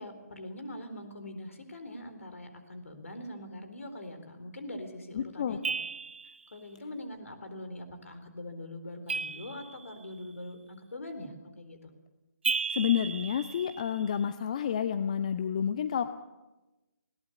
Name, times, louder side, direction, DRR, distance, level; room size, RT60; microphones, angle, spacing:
voice 1, 0.0-5.6 6.5-11.9, left 1 dB, 55° left, 8 dB, 4.0 m, -43 dB
voice 2, 5.1-5.6 12.7-16.1, left 8 dB, 25° left, 11 dB, 0.6 m, -29 dB
sound 1, 5.6-6.5 9.1-10.1 12.4-14.1, right 4 dB, 40° right, 0.9 m, -34 dB
20.0 x 18.5 x 8.2 m, 1.1 s
figure-of-eight pair, 150°, 9 cm